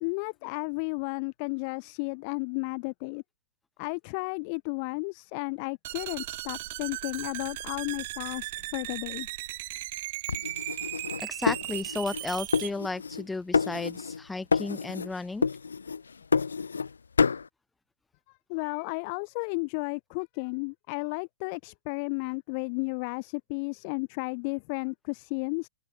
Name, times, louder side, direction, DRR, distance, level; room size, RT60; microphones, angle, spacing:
voice 1, 0.0-3.2 3.8-9.3 18.5-25.7, left 33 dB, 40° left, 0.9 m, -33 dB
sound 1, 5.8-12.7, right 18 dB, 50° right, 0.7 m, -37 dB
sound 2, 10.3-12.2 12.5-13.3 13.5-14.2 14.5-15.1 15.4-16.9 17.2-17.5, left 5 dB, 90° left, 0.6 m, -28 dB
voice 2, 11.2-15.5, left 3 dB, 5° left, 0.4 m, -34 dB
open air
hypercardioid pair, 130°, 0 cm